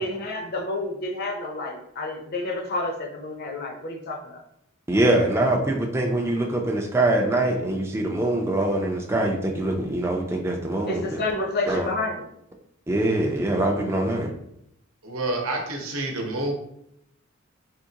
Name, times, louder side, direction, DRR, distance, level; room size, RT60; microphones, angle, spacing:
voice 1, 0.0-4.4 10.9-12.3, left 2 dB, 50° left, 3 dB, 0.6 m, -29 dB
voice 2, 4.9-11.2 11.7-11.9 12.9-14.3, right 1 dB, 10° right, 2 dB, 0.3 m, -23 dB
voice 3, 15.0-16.5, right 2 dB, 80° right, 2 dB, 0.8 m, -28 dB
3.6 x 2.9 x 2.8 m, 0.76 s
head